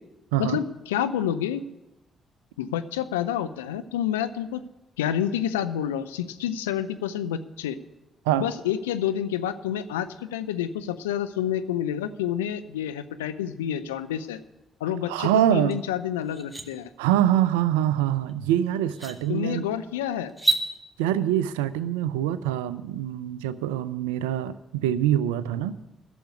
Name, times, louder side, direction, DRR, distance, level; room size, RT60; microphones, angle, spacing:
voice 1, 0.4-1.6 2.6-4.6 5.0-7.8 8.4-14.4 14.8-16.9 19.3-20.3, left 10 dB, 85° left, 11 dB, 0.5 m, -28 dB
voice 2, 15.1-15.8 17.0-19.7 21.0-25.8, right 11 dB, 85° right, 16 dB, 0.5 m, -24 dB
sound 1, 15.7-15.8 16.2-16.7 18.3-18.4 18.9-19.2 20.3-20.7, right 3 dB, ahead, 1.9 m, -26 dB
11.5 x 7.0 x 9.5 m, 0.95 s
hypercardioid pair, 45°, 0 cm